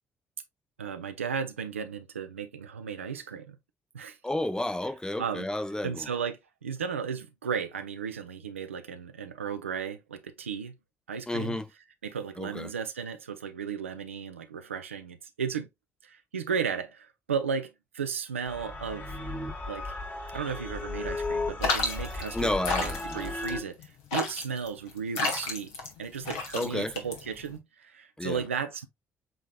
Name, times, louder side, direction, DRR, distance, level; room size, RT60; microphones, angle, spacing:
voice 1, 0.8-3.6 3.9-4.2 5.2-5.5 5.8-10.8 11.1-11.6 12.0-15.7 16.0-19.2 19.7-20.0 20.3-25.7 26.0-28.9, right 6 dB, 85° right, 0.4 m, -35 dB
voice 2, 4.2-6.1 11.3-11.7 12.4-12.7 22.3-23.3 26.5-26.9 28.2-28.4, left 1 dB, 10° left, 0.6 m, -31 dB
sound 1, 18.5-23.6, left 2 dB, 30° left, 1.2 m, -35 dB
sound 2, 21.6-27.6, left 3 dB, 70° left, 1.0 m, -32 dB
7.6 x 2.9 x 2.2 m
figure-of-eight pair, 45°, 7 cm